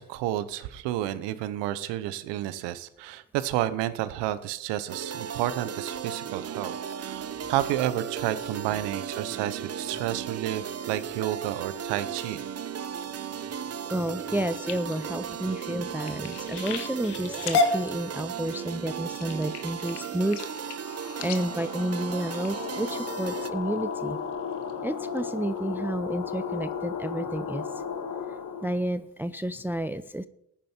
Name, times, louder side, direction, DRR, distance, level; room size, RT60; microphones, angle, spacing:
voice 1, 0.0-12.4, right 13 dB, 85° right, 14 dB, 1.0 m, -31 dB
sound 1, 4.9-23.5, right 8 dB, 35° right, 0.9 m, -36 dB
voice 2, 13.9-20.4 21.2-24.2 24.8-27.6 28.6-30.3, right 1 dB, 5° right, 13 dB, 0.6 m, -30 dB
sound 2, 14.3-23.0 23.6-23.9 24.3-24.7 25.2-25.3 25.6-25.7, left 3 dB, 70° left, 1.7 m, -33 dB
sound 3, 20.5-28.9, left 6 dB, 50° left, 1.8 m, -35 dB
14.5 x 10.0 x 4.5 m, 0.74 s
supercardioid pair, 65°, 42 cm